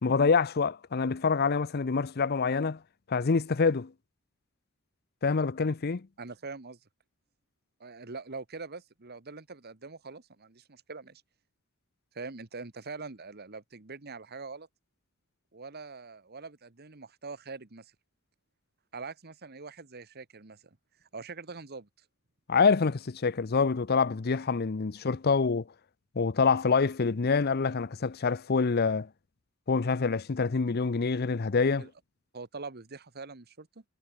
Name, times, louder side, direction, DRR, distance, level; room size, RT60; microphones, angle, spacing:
voice 1, 0.0-2.8 3.1-3.9 5.2-6.1 22.5-25.6 26.2-29.1 29.7-31.9, left 5 dB, 45° left, 0.6 m, -26 dB
voice 2, 6.2-6.8 7.8-11.2 12.1-14.7 15.5-17.9 18.9-20.6 21.1-21.9 31.8-31.9 32.3-33.8, right 4 dB, 50° right, 1.4 m, -43 dB
head